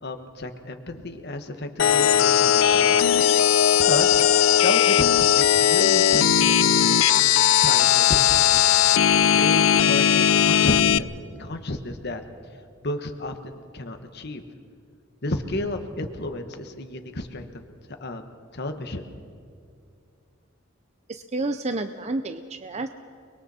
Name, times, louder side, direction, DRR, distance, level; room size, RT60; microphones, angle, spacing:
voice 1, 0.0-3.2 3.8-4.2 4.6-8.6 9.3-11.1 11.4-12.2 12.8-14.4 15.2-17.5 18.0-19.0, left 2 dB, 55° left, 6 dB, 1.4 m, -32 dB
sound 1, 1.8-11.0, left 9 dB, 75° left, 0.5 m, -18 dB
voice 2, 21.1-22.9, right 2 dB, 35° right, 9 dB, 0.6 m, -30 dB
29.5 x 21.5 x 4.3 m, 2.3 s
head